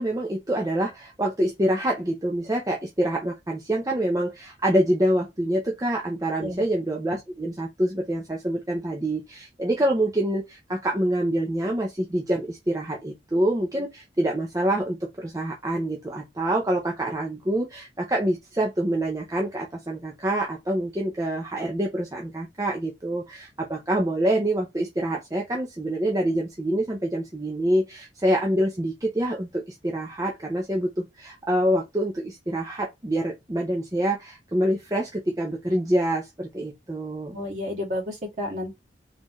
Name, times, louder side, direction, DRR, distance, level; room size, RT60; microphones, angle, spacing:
voice 1, 0.0-37.4, right 1 dB, 20° right, 0.6 m, -26 dB
voice 2, 37.3-38.7, left 1 dB, 40° right, 2.2 m, -31 dB
3.8 x 3.8 x 3.0 m
head